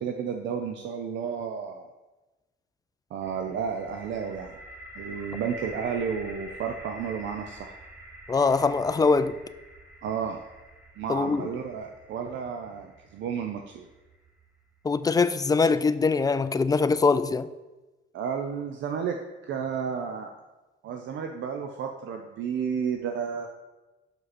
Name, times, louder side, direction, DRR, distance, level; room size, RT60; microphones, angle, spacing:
voice 1, 0.0-1.9 3.1-4.5 5.0-7.7 10.0-10.4 11.0-13.9 18.1-19.2 19.5-20.3 20.8-23.5, right 7 dB, 70° right, 4 dB, 0.6 m, -32 dB
sound 1, 3.2-15.1, right 1 dB, 10° right, 1.2 m, -47 dB
voice 2, 8.3-9.3 11.1-11.5 14.8-17.5, left 4 dB, 20° left, 13 dB, 0.3 m, -23 dB
6.4 x 5.1 x 4.2 m, 1.1 s
cardioid pair, 90°, 20 cm